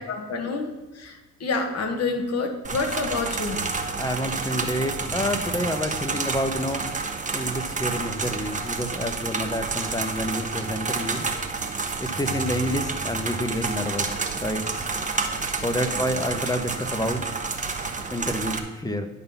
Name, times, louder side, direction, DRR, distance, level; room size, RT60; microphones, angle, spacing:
voice 1, 0.1-3.6, left 3 dB, 60° left, 4 dB, 1.6 m, -28 dB
sound 1, 2.6-18.6, right 4 dB, 25° right, 1.1 m, -29 dB
voice 2, 3.9-6.9 7.3-11.3 12.0-14.6 14.9-15.1 15.6-17.3 18.1-19.1, equal, 10° left, 7 dB, 1.1 m, -28 dB
10.5 x 4.1 x 7.0 m, 1.2 s
cardioid pair, 90°, 30 cm